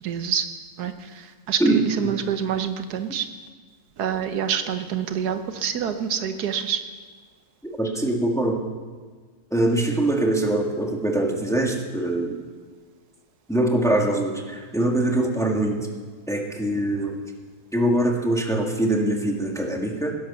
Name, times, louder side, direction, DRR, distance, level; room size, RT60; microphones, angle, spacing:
voice 1, 0.0-0.5 0.8-3.3 4.0-6.8, right 8 dB, 85° right, 8 dB, 1.5 m, -27 dB
voice 2, 7.6-8.6 9.5-12.4 13.5-15.8 16.3-17.2 17.7-20.1, right 1 dB, ahead, 1 dB, 1.6 m, -23 dB
16.5 x 11.0 x 6.8 m, 1.5 s
omnidirectional pair, 1.6 m